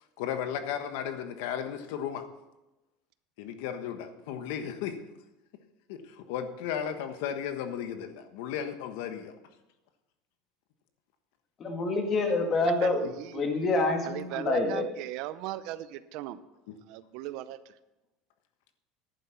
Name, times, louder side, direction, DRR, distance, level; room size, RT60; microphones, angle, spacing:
voice 1, 0.2-2.3 3.4-5.0 5.9-9.3 16.7-16.8, left 8 dB, 75° left, 1.3 m, -35 dB
voice 2, 11.6-13.1 13.3-14.9, left 3 dB, 30° left, 1.9 m, -27 dB
voice 3, 12.8-13.4 14.0-16.4 16.9-17.7, right 14 dB, 60° right, 0.6 m, -38 dB
11.0 x 9.4 x 5.7 m
cardioid pair, 155°, 0 cm